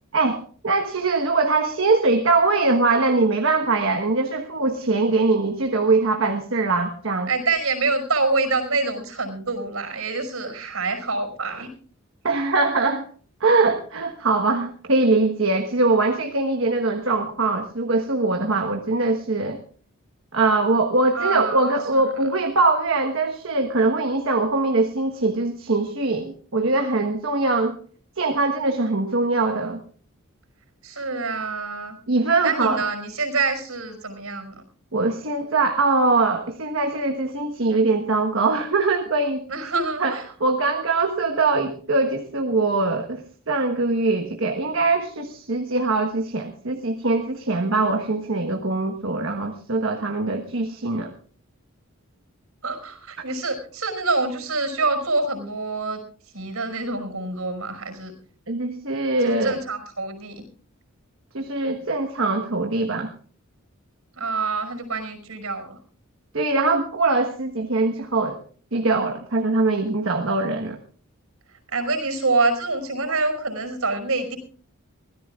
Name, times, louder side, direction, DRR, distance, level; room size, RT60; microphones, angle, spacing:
voice 1, 0.1-7.3 12.2-13.1 13.4-19.6 20.3-27.8 28.2-29.8 32.1-32.8 34.9-39.5 40.0-51.1 58.5-59.5 61.3-63.1 66.3-68.4 68.7-70.8, right 3 dB, 65° right, 4 dB, 1.3 m, -22 dB
voice 2, 7.3-11.7 21.1-22.0 30.8-34.5 39.5-40.3 52.6-56.0 56.3-58.1 59.2-60.4 64.2-65.8 71.7-74.4, right 3 dB, 85° right, 5 dB, 5.5 m, -26 dB
24.0 x 16.5 x 2.4 m, 0.43 s
head